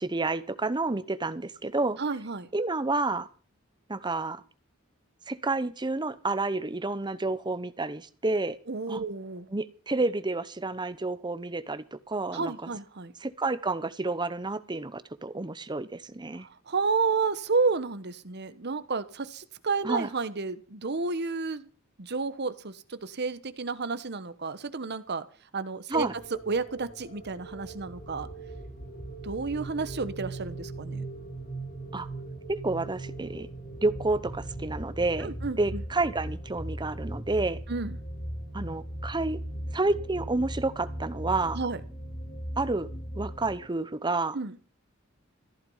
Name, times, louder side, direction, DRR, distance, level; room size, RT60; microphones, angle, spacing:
voice 1, 0.0-2.0 2.5-3.3 3.9-4.4 5.3-8.6 8.9-9.0 9.5-12.7 13.2-16.5 19.8-20.1 25.9-26.2 31.9-32.1 32.5-33.5 33.8-37.6 38.5-39.4 39.7-41.6 42.6-42.9 43.1-44.4, right 2 dB, 20° right, 0.9 m, -30 dB
voice 2, 2.0-2.5 8.7-9.5 12.3-13.1 16.7-21.7 22.0-25.2 25.5-26.1 26.5-28.3 29.2-31.0 35.2-35.8 37.7-38.0 41.5-41.8 44.3-44.6, right 4 dB, 55° right, 1.1 m, -31 dB
sound 1, 25.9-43.7, right 1 dB, 40° left, 3.1 m, -39 dB
14.5 x 13.0 x 5.6 m
head